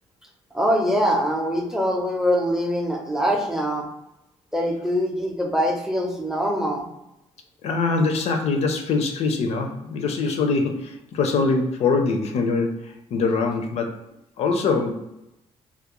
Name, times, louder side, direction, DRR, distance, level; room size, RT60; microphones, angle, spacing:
voice 1, 0.5-3.9 4.5-6.9, equal, 5° right, 1 dB, 0.5 m, -23 dB
voice 2, 7.6-14.0 14.4-14.9, left 4 dB, 65° left, 4 dB, 0.4 m, -23 dB
2.3 x 2.0 x 2.8 m, 0.88 s
cardioid pair, 85°, 12 cm